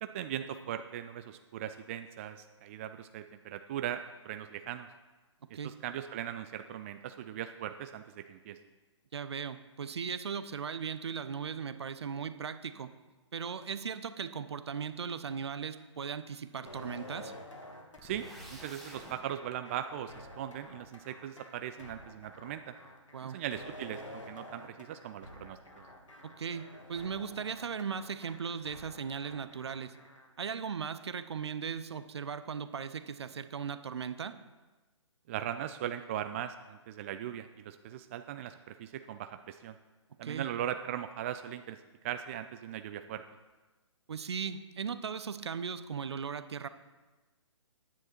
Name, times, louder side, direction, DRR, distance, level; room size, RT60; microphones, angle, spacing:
voice 1, 0.0-4.9 5.5-8.6 18.0-18.2 18.5-22.7 23.2-25.6 35.3-39.8 40.2-41.8 42.0-43.2, right 10 dB, 25° right, 9 dB, 0.3 m, -39 dB
voice 2, 9.1-12.9 13.3-17.3 23.1-23.4 26.2-29.9 30.4-34.4 40.2-40.5 44.1-46.7, right 6 dB, 60° right, 13 dB, 0.7 m, -38 dB
sound 1, 16.7-30.3, left 1 dB, 85° left, 2.0 m, -50 dB
sound 2, 18.0-19.2, right 1 dB, ahead, 1.6 m, -49 dB
9.9 x 9.6 x 4.4 m, 1.2 s
figure-of-eight pair, 130°, 16 cm